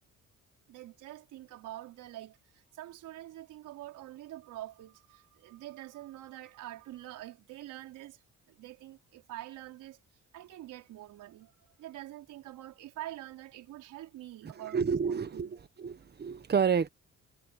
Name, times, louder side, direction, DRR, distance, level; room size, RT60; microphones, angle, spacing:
voice 1, 0.7-8.2 8.5-10.0 10.3-14.8 15.0-15.5, right 14 dB, 90° right, 4.9 m, -46 dB
voice 2, 14.7-16.9, right 6 dB, 35° right, 1.2 m, -29 dB
cardioid pair, 90°, 30 cm